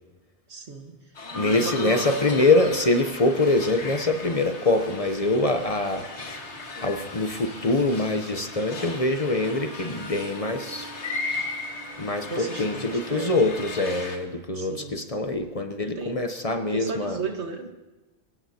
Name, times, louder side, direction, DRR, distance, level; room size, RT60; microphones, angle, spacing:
voice 1, 0.5-1.0 1.5-2.1 12.3-13.4 14.6-15.0 16.0-16.2 16.7-17.7, right 5 dB, 80° right, 4 dB, 1.8 m, -34 dB
sound 1, 1.2-14.2, left 2 dB, 85° left, 2.0 m, -36 dB
voice 2, 1.3-6.0 6.7-10.9 12.0-17.2, left 2 dB, 35° left, 6 dB, 0.9 m, -24 dB
25.5 x 17.0 x 2.8 m, 1.1 s
omnidirectional pair, 1.1 m